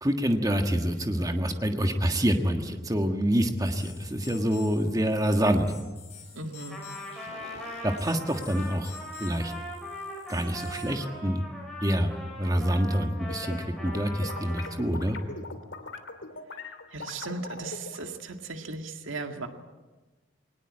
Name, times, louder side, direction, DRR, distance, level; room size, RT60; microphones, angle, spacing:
voice 1, 0.0-5.7 7.8-8.9 9.2-9.5 10.3-11.4 11.8-12.1 12.4-15.2, equal, 20° right, 5 dB, 1.5 m, -26 dB
sound 1, 3.6-10.9, left 6 dB, 35° left, 7.6 m, -49 dB
voice 2, 6.3-6.8 16.9-19.5, right 3 dB, 85° right, 5 dB, 2.0 m, -37 dB
Trumpet, 6.7-14.8, equal, ahead, 5.8 m, -40 dB
sound 2, 13.0-13.6 13.9-18.1, left 3 dB, 70° left, 2.7 m, -40 dB
22.5 x 19.5 x 8.8 m, 1.2 s
head